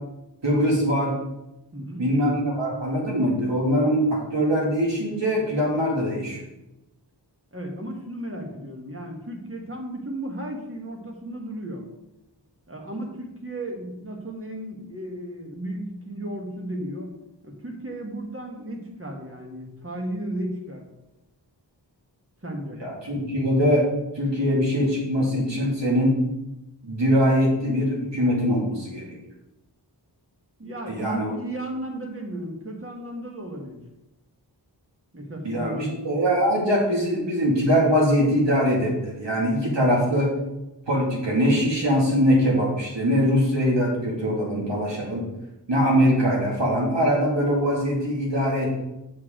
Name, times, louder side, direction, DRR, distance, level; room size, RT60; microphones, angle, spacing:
voice 1, 0.4-1.2 2.0-6.4 22.8-23.9 24.1-26.2 26.8-29.2 30.9-31.4 35.4-40.3 40.9-45.2 45.7-48.8, equal, 80° right, -3 dB, 2.3 m, -22 dB
voice 2, 1.7-2.0 7.5-11.8 12.7-17.1 17.4-20.8 22.4-22.8 30.6-33.8 35.1-36.2, right 1 dB, 30° right, 1 dB, 1.5 m, -34 dB
7.3 x 6.3 x 3.8 m, 0.94 s
wide cardioid pair, 65°, 43 cm